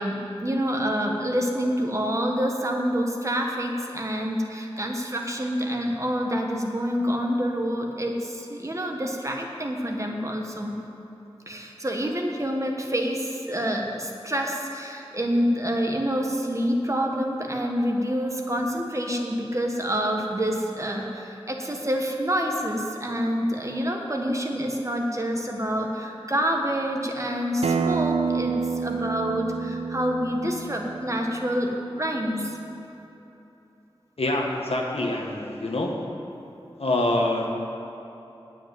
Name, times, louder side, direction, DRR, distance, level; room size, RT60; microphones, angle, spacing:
voice 1, 0.0-10.8 11.5-32.6, equal, 30° right, 1 dB, 1.4 m, -27 dB
Acoustic guitar, 27.6-32.8, right 5 dB, 85° right, 0.6 m, -29 dB
voice 2, 34.2-35.9 36.8-37.5, left 1 dB, 85° left, 0 dB, 1.4 m, -25 dB
8.6 x 7.8 x 9.0 m, 3.0 s
wide cardioid pair, 65°, 10 cm